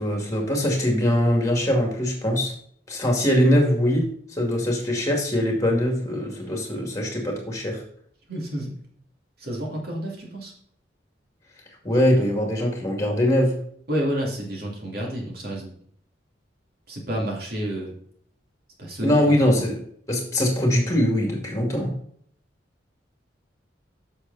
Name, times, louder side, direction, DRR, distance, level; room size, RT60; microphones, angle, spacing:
voice 1, 0.0-2.5 2.9-4.0 4.4-7.8 11.8-13.5 19.0-19.8 20.1-21.9, left 1 dB, 15° left, 1 dB, 2.3 m, -22 dB
voice 2, 8.3-8.7 9.4-10.5 13.9-15.7 16.9-17.9 18.8-19.2 19.4-19.7, right 1 dB, 50° right, -1 dB, 2.7 m, -30 dB
8.2 x 6.6 x 4.1 m, 0.62 s
head